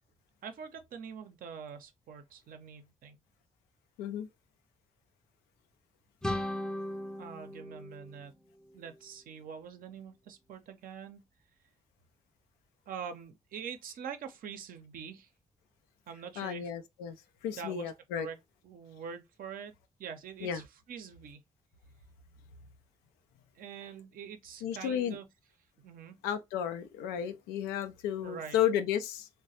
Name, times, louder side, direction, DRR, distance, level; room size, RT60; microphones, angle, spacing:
voice 1, 0.4-3.2 7.2-8.3 8.7-11.2 12.9-15.3 16.1-16.7 17.6-18.4 18.6-19.7 20.0-21.4 23.6-25.3 25.8-26.2 28.2-28.6, right 7 dB, 60° right, 0.6 m, -44 dB
sound 1, 6.2-9.0, left 1 dB, 5° left, 0.5 m, -38 dB
voice 2, 16.4-17.2 17.4-18.3 20.4-20.6 24.6-25.2 26.2-29.3, left 9 dB, 75° left, 0.4 m, -33 dB
3.0 x 2.1 x 2.7 m
hypercardioid pair, 40°, 16 cm